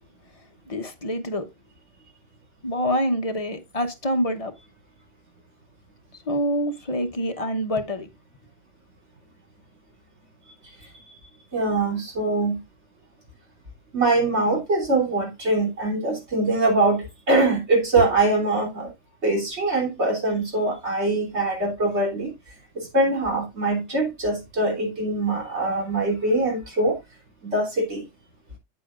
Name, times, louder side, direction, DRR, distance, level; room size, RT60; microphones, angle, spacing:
voice 1, 0.7-1.5 2.6-4.5 6.3-8.1, equal, 30° left, 1.1 m, -26 dB
voice 2, 11.5-12.6 13.9-18.9 19.2-22.3 22.8-27.0 27.4-28.0, right 2 dB, 60° right, 3.7 m, -23 dB
8.4 x 8.3 x 2.5 m
omnidirectional pair, 1.3 m